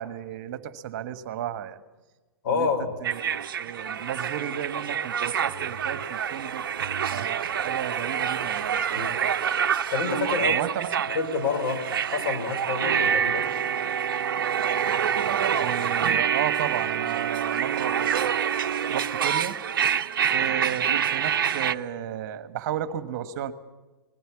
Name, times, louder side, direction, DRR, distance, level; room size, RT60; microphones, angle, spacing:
voice 1, 0.0-1.8 2.5-2.7 3.0-6.8 7.1-9.1 10.4-10.9 15.6-18.4 18.9-19.5 20.3-23.5, right 10 dB, 45° right, 12 dB, 1.5 m, -33 dB
voice 2, 2.4-2.9 8.9-9.1 9.9-10.6 11.1-11.8 12.1-13.5 20.3-20.5, left 5 dB, 55° left, 5 dB, 3.7 m, -28 dB
sound 1, 3.0-21.7, right 8 dB, 60° right, 0.8 m, -26 dB
20.0 x 17.5 x 8.4 m, 1.2 s
figure-of-eight pair, 110°, 13 cm